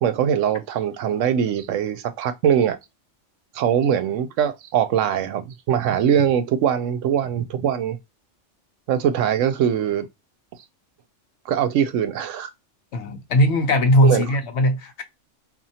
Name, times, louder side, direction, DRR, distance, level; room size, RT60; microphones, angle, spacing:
voice 1, 0.0-2.8 3.5-8.0 8.9-10.1 11.5-12.5 14.0-14.2, right 9 dB, 80° right, 0.9 m, -22 dB
voice 2, 12.9-15.0, equal, 65° left, 0.9 m, -19 dB
4.3 x 2.5 x 2.7 m
omnidirectional pair, 1.3 m